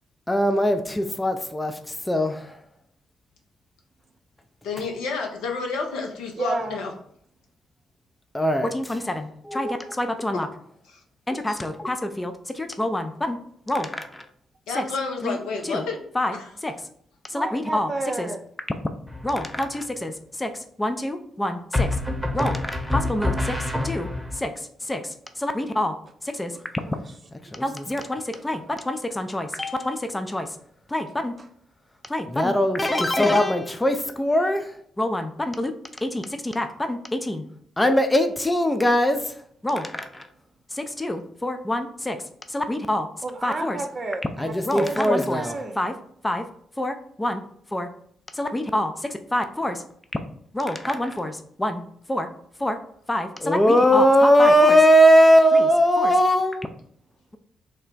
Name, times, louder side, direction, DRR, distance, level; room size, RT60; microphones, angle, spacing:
voice 1, 0.3-2.6 8.3-10.5 11.3-13.4 13.7-14.2 14.8-14.9 15.2-15.4 15.6-15.8 16.1-16.4 16.6-16.7 17.3-17.9 18.2-18.3 19.2-20.1 20.4-21.9 22.3-23.6 23.8-24.1 24.3-25.9 26.2-26.5 27.5-30.5 30.9-31.3 32.1-35.7 36.0-37.4 37.8-39.3 39.6-40.3 40.7-42.2 42.5-43.1 43.4-43.8 44.4-45.9 46.2-46.4 46.8-47.4 47.7-47.9 48.3-49.8 50.5-51.8 52.1-52.3 52.6-52.8 53.1-56.7, equal, 15° left, 0.4 m, -23 dB
voice 2, 4.6-6.9 10.3-10.4 14.7-16.0 16.3-16.5, left 4 dB, 75° left, 0.6 m, -30 dB
voice 3, 6.3-6.8 17.3-18.4 26.7-27.1 28.3-28.4 31.4-31.5 43.2-45.8, right 2 dB, 45° right, 0.4 m, -31 dB
sound 1, 19.1-19.6 21.7-24.4, left 2 dB, ahead, 0.9 m, -26 dB
3.3 x 2.1 x 3.9 m
hypercardioid pair, 40°, 0 cm